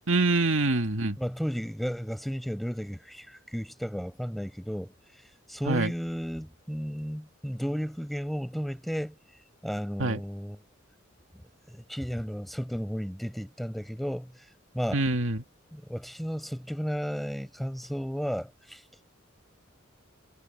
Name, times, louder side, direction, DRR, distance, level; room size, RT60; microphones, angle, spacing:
voice 1, 0.1-1.2 5.7-5.9 10.0-10.2 14.9-15.4, right 2 dB, 80° right, 2.1 m, -25 dB
voice 2, 1.2-4.9 5.5-9.1 9.6-10.6 11.7-14.4 14.7-15.0 15.7-18.8, equal, ahead, 6.8 m, -33 dB
head